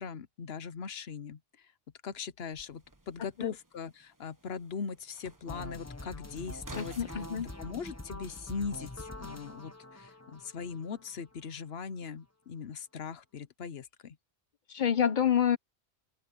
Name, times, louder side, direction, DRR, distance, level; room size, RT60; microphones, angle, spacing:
voice 1, 0.0-1.4 2.0-7.2 7.6-14.2, left 6 dB, 65° left, 1.1 m, -40 dB
sound 1, 2.5-7.5, right 2 dB, 15° right, 1.3 m, -53 dB
sound 2, 5.5-11.5, left 1 dB, 15° left, 1.0 m, -45 dB
voice 2, 6.8-7.5 14.7-15.6, left 8 dB, 50° left, 0.8 m, -27 dB
open air
omnidirectional pair, 1.1 m